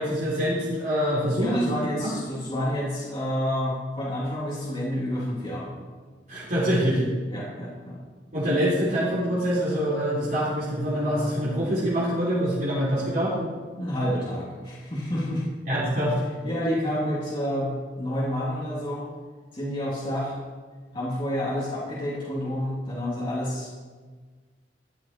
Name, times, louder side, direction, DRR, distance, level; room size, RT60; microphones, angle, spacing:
voice 1, 0.0-2.1 6.3-7.0 8.3-13.3 15.7-16.2, equal, 50° right, -8 dB, 3.4 m, -25 dB
voice 2, 1.3-5.7 7.3-8.0 13.8-15.4 16.4-19.1 19.5-20.4 20.9-23.7, equal, 30° left, -7 dB, 2.4 m, -29 dB
14.0 x 10.5 x 4.3 m, 1.5 s
head